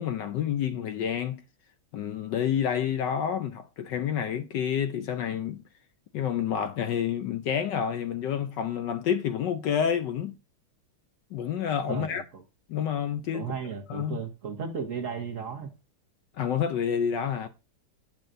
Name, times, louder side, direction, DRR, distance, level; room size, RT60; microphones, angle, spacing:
voice 1, 0.0-1.4 1.9-5.6 6.1-10.3 11.3-12.2 12.7-13.6 13.9-14.2 16.3-17.5, left 8 dB, 70° left, 1.1 m, -29 dB
voice 2, 11.9-12.4 13.3-15.7, right 6 dB, 45° right, 1.2 m, -35 dB
8.9 x 7.5 x 2.6 m
omnidirectional pair, 2.3 m